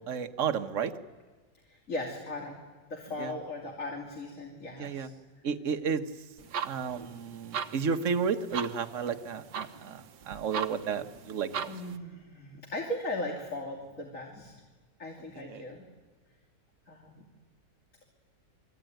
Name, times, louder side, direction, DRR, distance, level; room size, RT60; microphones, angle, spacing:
voice 1, 0.1-0.9 3.2-3.3 4.8-5.1 5.4-6.0 6.6-11.7 15.3-15.6, right 6 dB, 50° right, 7 dB, 1.4 m, -32 dB
voice 2, 1.7-2.6 2.9-5.1 11.7-14.5 15.0-15.8 16.9-17.2, left 1 dB, 45° left, 0 dB, 3.2 m, -38 dB
sound 1, 6.4-12.0, right 7 dB, 75° right, 1.6 m, -39 dB
29.0 x 22.5 x 9.1 m, 1.3 s
omnidirectional pair, 1.9 m